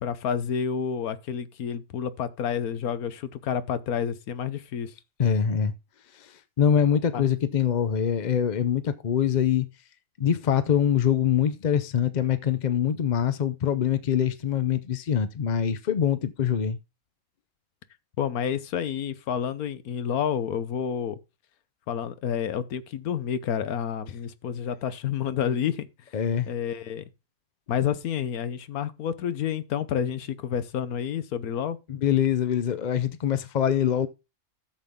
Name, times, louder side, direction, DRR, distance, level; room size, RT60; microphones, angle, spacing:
voice 1, 0.0-4.9 7.1-7.3 18.2-21.2 21.9-25.9 26.5-27.1 27.7-31.8, left 8 dB, 90° left, 1.4 m, -29 dB
voice 2, 5.2-5.7 6.2-6.3 6.6-9.7 10.2-16.8 26.1-26.5 31.9-34.1, left 8 dB, 55° left, 0.5 m, -24 dB
13.0 x 7.7 x 3.6 m
omnidirectional pair, 1.5 m